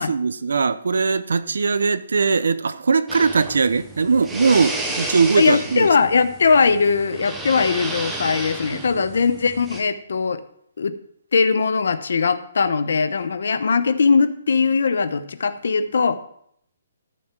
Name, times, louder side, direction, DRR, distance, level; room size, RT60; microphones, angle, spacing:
voice 1, 0.0-5.9 8.7-9.0, right 5 dB, 80° right, 0.7 m, -20 dB
sound 1, 3.1-9.8, right 2 dB, 5° right, 0.8 m, -32 dB
voice 2, 5.4-10.4 10.8-11.0 11.3-16.2, left 5 dB, 60° left, 0.8 m, -20 dB
14.0 x 6.4 x 4.6 m
hypercardioid pair, 180°, 0 cm